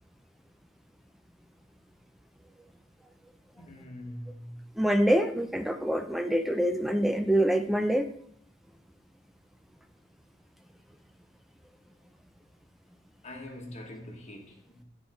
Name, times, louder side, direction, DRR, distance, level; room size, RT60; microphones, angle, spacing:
voice 1, 3.5-4.6 13.2-14.8, left 1 dB, 35° left, 1.1 m, -43 dB
voice 2, 4.8-8.1, equal, ahead, 0.3 m, -25 dB
9.5 x 3.9 x 2.9 m
head